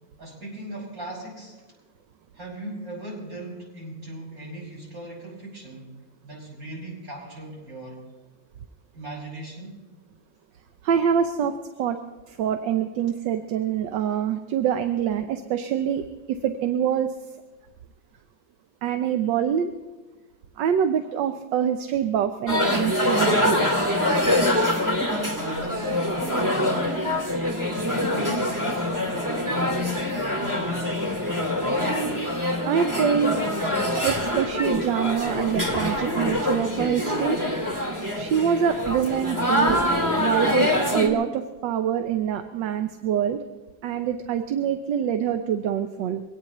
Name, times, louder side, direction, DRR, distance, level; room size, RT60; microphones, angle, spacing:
voice 1, 0.2-1.6 2.3-5.9 6.2-8.1 8.9-9.8 25.1-27.0 27.8-31.1, right 1 dB, 50° right, -4 dB, 6.4 m, -38 dB
voice 2, 10.8-11.5 11.8-12.0 12.3-17.1 18.8-19.7 20.6-23.7 32.7-33.4 34.0-37.4 38.1-39.8 40.2-43.4 43.8-46.2, right 8 dB, 80° right, 8 dB, 1.4 m, -25 dB
sound 1, 22.5-41.1, left 1 dB, 10° right, 1.7 m, -25 dB
23.5 x 17.5 x 3.0 m, 1.2 s
omnidirectional pair, 2.0 m